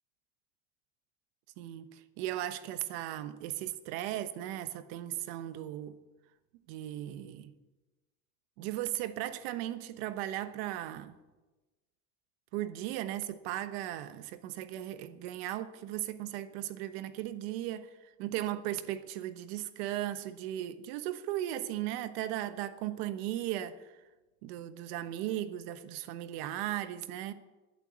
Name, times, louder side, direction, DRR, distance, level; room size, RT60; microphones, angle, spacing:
voice 1, 1.6-6.0 6.7-7.5 8.6-11.1 12.5-17.9 18.2-23.9 24.4-27.3, right 13 dB, 80° right, 1.1 m, -37 dB
11.5 x 11.0 x 8.3 m
cardioid pair, 170°, 30 cm